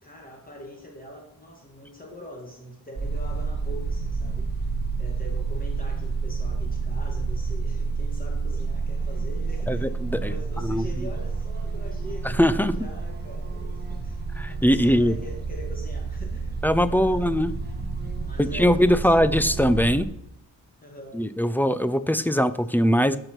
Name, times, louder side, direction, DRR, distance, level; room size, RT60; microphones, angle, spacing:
voice 1, 0.0-4.6 5.0-14.2 14.5-16.6 16.9-17.5 18.2-19.7 20.8-21.2, left 1 dB, 25° left, 0 dB, 1.8 m, -43 dB
sound 1, 3.0-20.0, right 4 dB, 30° right, 1.6 m, -30 dB
voice 2, 9.7-10.3 10.6-10.8 12.2-12.7 14.4-15.1 16.6-17.5 18.4-20.1 21.1-23.2, equal, 5° left, 13 dB, 0.3 m, -21 dB
13.0 x 5.8 x 4.4 m, 0.80 s
wide cardioid pair, 160°, 35 cm